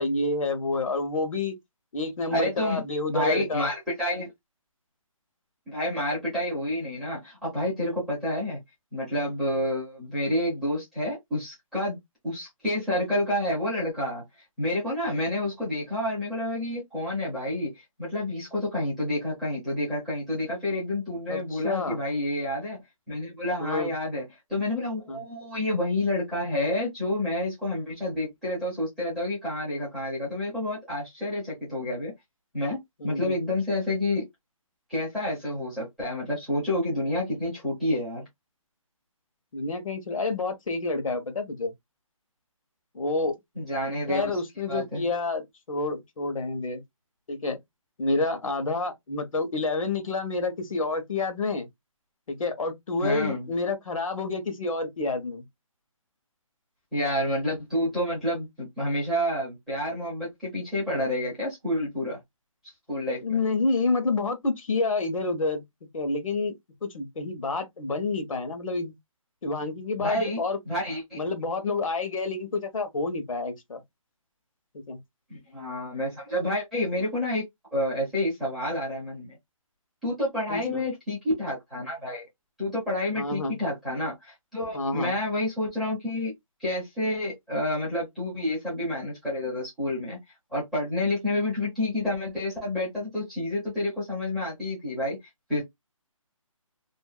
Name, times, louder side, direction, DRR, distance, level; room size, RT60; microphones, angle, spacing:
voice 1, 0.0-1.6 1.9-3.7 21.3-22.0 23.6-23.9 25.1-25.2 33.0-33.3 39.5-41.7 42.9-43.4 44.1-46.8 47.3-47.6 48.0-51.7 52.3-55.4 63.2-65.6 65.9-66.5 66.8-68.9 69.4-70.6 71.1-73.8 74.7-75.0 80.5-80.8 83.2-83.6 84.7-85.1, left 3 dB, 70° left, 1.0 m, -28 dB
voice 2, 2.3-2.8 3.1-4.3 5.7-8.6 8.9-12.0 12.2-14.2 14.6-22.8 23.1-24.2 24.5-32.1 32.5-32.8 33.0-34.2 34.9-38.3 43.6-44.4 44.7-45.1 53.0-53.5 56.9-62.2 62.9-63.2 70.0-71.2 75.3-77.4 77.7-79.4 80.0-82.2 82.6-86.3 86.6-90.2 90.5-95.2 95.5-95.6, left 1 dB, ahead, 0.6 m, -29 dB
2.5 x 2.5 x 2.3 m
hypercardioid pair, 175°, 18 cm